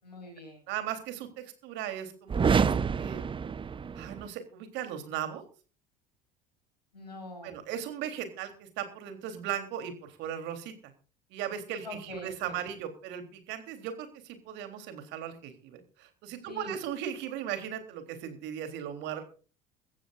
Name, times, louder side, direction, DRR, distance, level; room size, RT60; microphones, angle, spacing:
voice 1, 0.0-0.6 6.9-7.6 11.8-12.6 16.5-16.8, left 1 dB, 90° left, 3 dB, 6.5 m, -44 dB
voice 2, 0.7-3.2 4.0-5.4 7.4-10.9 11.3-19.2, right 9 dB, 60° right, 7 dB, 3.6 m, -37 dB
sound 1, 2.3-4.3, right 6 dB, 25° right, 0.8 m, -27 dB
23.0 x 15.0 x 2.6 m, 0.37 s
figure-of-eight pair, 65°, 21 cm